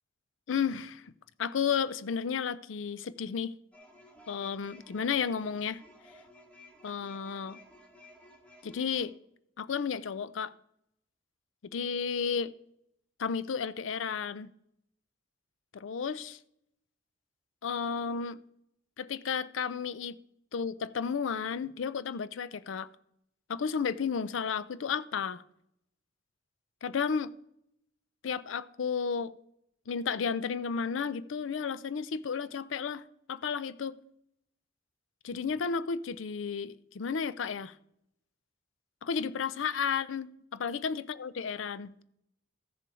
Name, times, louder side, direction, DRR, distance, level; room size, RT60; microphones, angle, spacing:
voice 1, 0.5-1.0 1.4-3.5 4.3-5.8 6.8-7.6 8.6-9.1 9.6-10.5 11.7-12.5 13.2-14.5 15.7-16.4 17.6-18.4 19.0-20.2 20.5-22.9 23.5-25.4 26.8-27.3 28.2-29.3 29.9-33.0 33.3-34.0 35.2-37.7 39.0-40.3 40.6-42.0, left 6 dB, 80° left, 0.5 m, -32 dB
sound 1, 3.7-9.1, left 1 dB, 5° left, 1.8 m, -56 dB
13.5 x 6.8 x 4.8 m
head